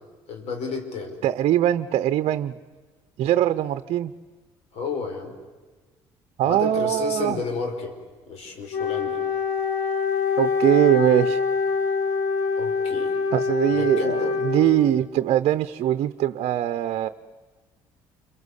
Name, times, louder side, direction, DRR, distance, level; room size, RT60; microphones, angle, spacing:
voice 1, 0.3-1.2 4.7-5.3 6.4-8.0 8.3-9.2 12.6-13.1 13.7-14.3, left 4 dB, 70° left, 6 dB, 5.3 m, -31 dB
voice 2, 1.2-2.5 3.2-4.1 6.4-7.4 10.4-11.4 13.3-17.1, right 12 dB, 65° right, 12 dB, 0.8 m, -22 dB
Wind instrument woodwind instrument, 8.7-15.1, left 5 dB, 85° left, 4.5 m, -25 dB
28.5 x 24.0 x 8.3 m, 1.3 s
supercardioid pair, 75°, 11 cm